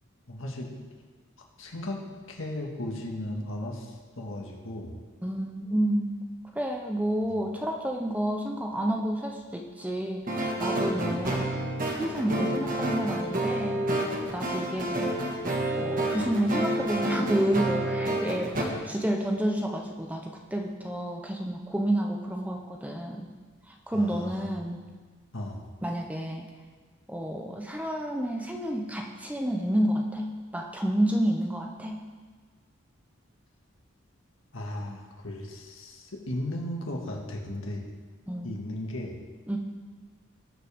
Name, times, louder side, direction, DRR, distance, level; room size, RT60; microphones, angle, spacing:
voice 1, 0.3-0.7 1.6-2.0 2.3-5.0 7.3-7.4 23.9-24.7 25.3-25.6 34.5-37.8 38.4-39.2, left 1 dB, 70° left, 0 dB, 1.8 m, -36 dB
voice 2, 5.2-6.2 6.5-11.5 11.9-13.8 14.3-15.3 15.8-23.3 23.7-24.8 25.8-26.5 27.1-32.0 38.3-38.5 39.5-39.6, right 1 dB, 5° right, 1 dB, 0.8 m, -30 dB
sound 1, 10.3-18.6, right 1 dB, 40° right, 1.6 m, -29 dB
18.5 x 7.4 x 3.6 m, 1.4 s
head